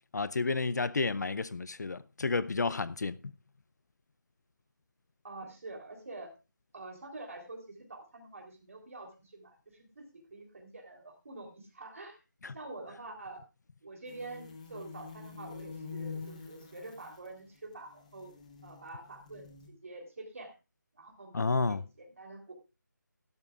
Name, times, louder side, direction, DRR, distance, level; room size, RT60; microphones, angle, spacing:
voice 1, 0.1-3.2 12.4-12.6 21.3-21.8, left 3 dB, 60° left, 0.5 m, -31 dB
voice 2, 5.2-6.3 6.7-12.2 12.5-13.4 13.8-18.3 18.6-20.5 20.9-22.5, right 2 dB, 45° right, 3.5 m, -47 dB
sound 1, 14.1-19.7, left 5 dB, 20° left, 1.3 m, -46 dB
16.0 x 12.5 x 2.4 m
figure-of-eight pair, 175°, 11 cm